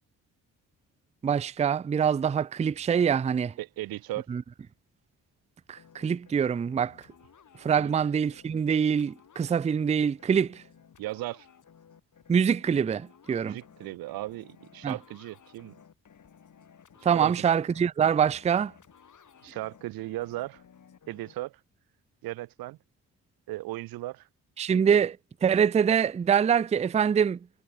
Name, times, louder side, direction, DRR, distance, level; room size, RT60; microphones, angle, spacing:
voice 1, 1.2-3.5 4.3-4.4 5.7-7.0 7.6-10.6 12.3-13.6 14.8-15.0 17.0-18.7 24.6-25.2 25.4-27.4, right 7 dB, 20° right, 0.4 m, -24 dB
voice 2, 3.6-4.3 7.8-7.9 11.0-11.5 13.4-15.8 17.0-17.3 19.4-20.6 21.1-21.6 22.2-22.8 23.5-24.3, right 17 dB, 80° right, 0.6 m, -36 dB
sound 1, 5.7-21.3, left 7 dB, 60° left, 6.2 m, -56 dB
cardioid pair, 75°, 35 cm